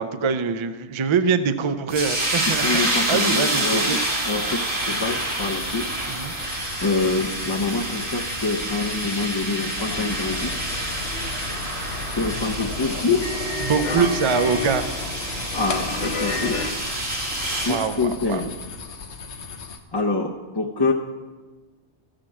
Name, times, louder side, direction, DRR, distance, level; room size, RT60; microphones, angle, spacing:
voice 1, 0.0-2.7 3.1-4.0 6.1-6.3 13.6-14.9 17.7-18.4, right 6 dB, 40° right, 11 dB, 0.4 m, -23 dB
sound 1, 1.9-17.8, right 1 dB, 70° right, 2.4 m, -28 dB
voice 2, 2.5-5.9 6.8-10.6 12.2-13.3 14.0-14.1 15.5-16.6 17.6-18.5 19.9-20.9, left 3 dB, 30° left, 0 dB, 0.5 m, -26 dB
sound 2, 4.8-19.8, left 5 dB, 85° left, 1.2 m, -38 dB
sound 3, 9.8-16.7, left 3 dB, 65° left, 1.2 m, -31 dB
14.0 x 5.1 x 7.2 m, 1.3 s
omnidirectional pair, 1.1 m